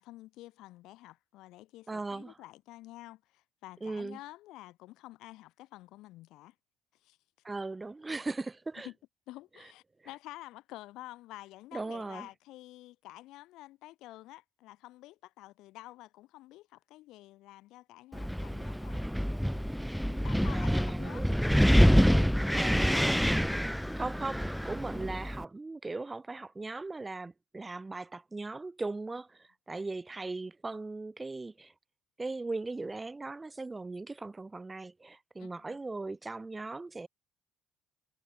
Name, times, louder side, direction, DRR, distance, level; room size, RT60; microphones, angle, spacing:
voice 1, 0.0-6.5 7.0-7.2 8.8-8.9 9.3-19.1 20.1-21.3 22.6-23.2 35.4-35.8, left 17 dB, 75° left, 4.5 m, -50 dB
voice 2, 1.9-2.4 3.8-4.2 7.4-8.9 11.7-12.3 20.5-21.4 22.5-23.1 23.9-31.7 32.2-37.1, right 3 dB, 15° right, 1.5 m, -38 dB
Wind, 18.1-25.4, equal, ahead, 0.4 m, -26 dB
cardioid pair, 100°, 0 cm